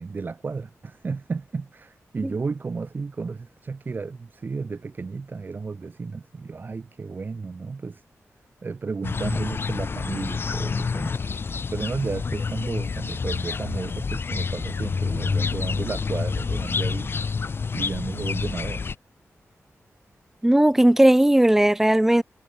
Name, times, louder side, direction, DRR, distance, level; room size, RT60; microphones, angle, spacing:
voice 1, 0.0-8.0 8.6-11.2 11.7-17.1 17.7-18.8, right 4 dB, 40° right, 7.4 m, -33 dB
sound 1, 9.0-18.9, left 5 dB, 45° left, 4.7 m, -28 dB
voice 2, 20.4-22.2, right 1 dB, 5° right, 0.5 m, -17 dB
wide cardioid pair, 175°, 5 cm